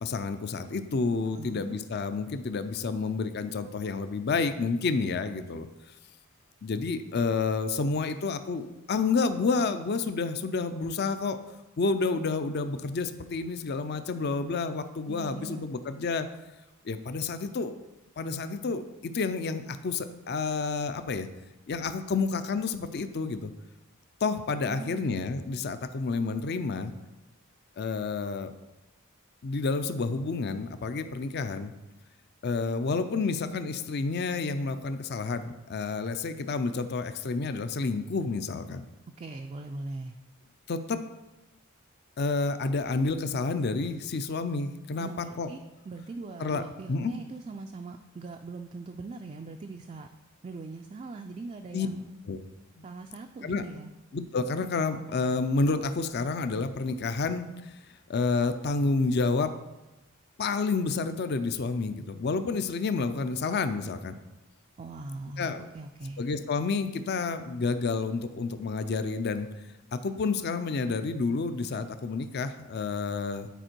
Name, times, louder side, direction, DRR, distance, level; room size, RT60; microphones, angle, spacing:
voice 1, 0.0-5.7 6.6-11.4 11.8-16.3 16.8-17.7 18.2-21.3 21.7-23.5 24.2-26.9 27.8-28.5 29.4-31.7 32.4-38.8 40.7-41.0 42.2-45.5 46.4-46.6 46.9-47.1 51.7-51.9 52.3-52.4 52.8-52.9 53.4-53.6 54.1-57.8 58.1-59.5 60.4-64.2 65.4-65.7 66.2-69.5 69.9-73.5, left 4 dB, 50° left, 10 dB, 0.4 m, -29 dB
voice 2, 1.3-1.8 15.1-15.7 24.7-25.2 39.2-40.1 45.0-45.6 45.9-50.1 50.4-52.1 52.8-53.9 64.8-66.2, right 3 dB, 30° right, 4 dB, 0.3 m, -41 dB
9.1 x 4.5 x 4.4 m, 1.0 s
head